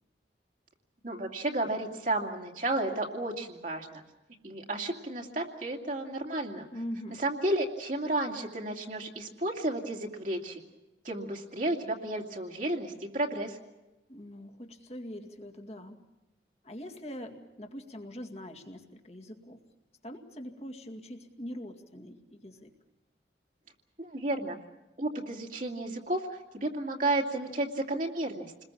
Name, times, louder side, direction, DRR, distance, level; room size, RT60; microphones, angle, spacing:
voice 1, 1.0-4.0 4.4-6.7 7.2-10.6 11.0-13.6 24.0-24.6 25.0-28.6, right 1 dB, 45° right, 0 dB, 2.5 m, -32 dB
voice 2, 6.7-7.2 14.1-16.0 16.6-19.6 20.0-22.7, equal, 35° left, 3 dB, 2.2 m, -43 dB
29.0 x 21.0 x 7.2 m, 1.0 s
head